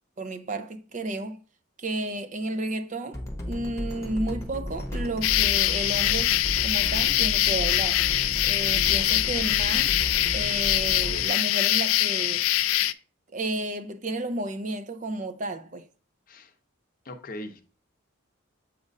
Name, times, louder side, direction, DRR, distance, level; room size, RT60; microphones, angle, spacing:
voice 1, 0.2-1.4 1.8-6.4 6.6-8.0 8.4-10.0 10.3-12.4 13.3-15.9, right 2 dB, 35° right, 0.5 m, -32 dB
sound 1, 3.1-11.3, equal, 15° left, 0.9 m, -34 dB
sound 2, 5.2-12.9, left 14 dB, 85° left, 0.3 m, -23 dB
voice 2, 17.0-17.6, left 1 dB, 45° left, 0.7 m, -39 dB
7.2 x 2.5 x 5.2 m
head